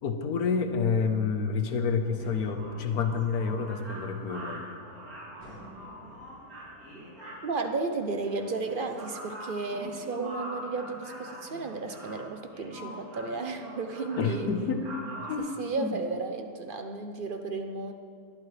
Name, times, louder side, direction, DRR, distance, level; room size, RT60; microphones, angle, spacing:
voice 1, 0.0-4.6 14.2-14.9 15.3-16.0, left 5 dB, 75° left, 5 dB, 1.5 m, -29 dB
sound 1, 2.0-15.4, right 1 dB, 70° right, 3.3 m, -43 dB
voice 2, 7.4-14.5 15.4-17.9, right 3 dB, 50° right, 6 dB, 0.6 m, -33 dB
20.0 x 11.5 x 3.3 m, 2.3 s
omnidirectional pair, 1.6 m